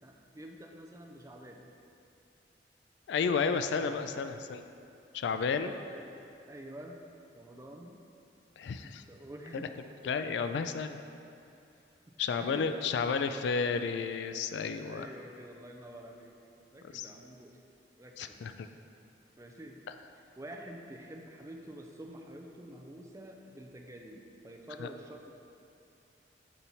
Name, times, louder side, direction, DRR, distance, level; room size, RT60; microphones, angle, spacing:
voice 1, 0.0-1.6 3.8-4.1 5.9-6.0 6.5-7.0 7.3-8.0 8.8-10.0 12.4-12.8 14.8-16.4 16.7-17.5 18.0-18.4 19.4-19.8 20.1-25.3, right 1 dB, 20° right, 2 dB, 0.4 m, -48 dB
voice 2, 3.1-4.6 5.1-5.7 8.6-9.0 10.0-11.0 12.2-15.1 16.9-17.1 18.2-18.7 24.8-24.9, left 5 dB, 80° left, 9 dB, 0.3 m, -32 dB
7.2 x 4.3 x 4.0 m, 2.6 s
head